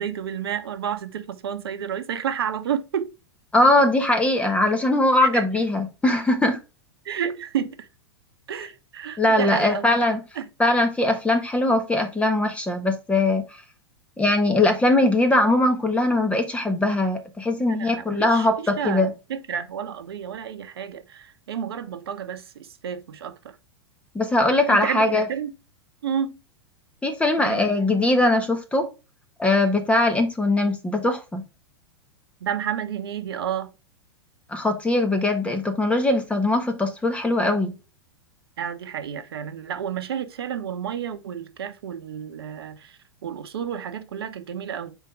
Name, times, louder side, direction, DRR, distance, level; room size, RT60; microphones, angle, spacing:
voice 1, 0.0-3.1 5.2-5.4 7.0-7.9 8.5-9.9 10.3-10.5 17.6-23.6 24.7-25.5 26.0-26.4 27.4-27.6 32.4-33.7 38.6-45.0, right 8 dB, 65° right, 1.0 m, -31 dB
voice 2, 3.5-6.6 9.2-10.2 10.6-13.4 14.2-19.1 24.1-25.2 27.0-28.9 29.4-31.4 34.5-37.7, left 2 dB, 10° left, 1.2 m, -21 dB
5.9 x 4.5 x 3.6 m
figure-of-eight pair, 100°, 13 cm